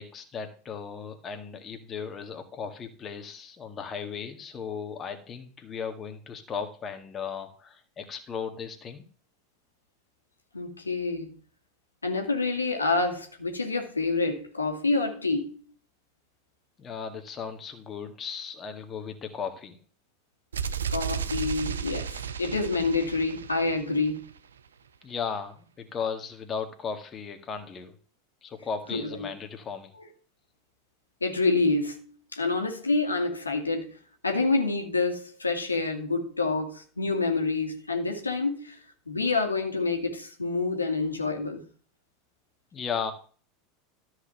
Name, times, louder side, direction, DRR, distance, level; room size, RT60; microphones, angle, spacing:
voice 1, 0.0-9.0 16.8-19.8 25.0-27.9 28.4-29.9 42.7-43.1, left 6 dB, 30° left, 2.0 m, -36 dB
voice 2, 10.5-11.3 12.0-15.6 20.9-24.3 28.9-29.3 29.9-30.1 31.2-32.1 32.3-34.0 34.2-38.8 39.1-41.7, left 3 dB, 85° left, 2.2 m, -27 dB
sound 1, 20.5-24.4, right 7 dB, 75° right, 0.8 m, -34 dB
13.5 x 4.9 x 7.7 m
figure-of-eight pair, 80°, 0 cm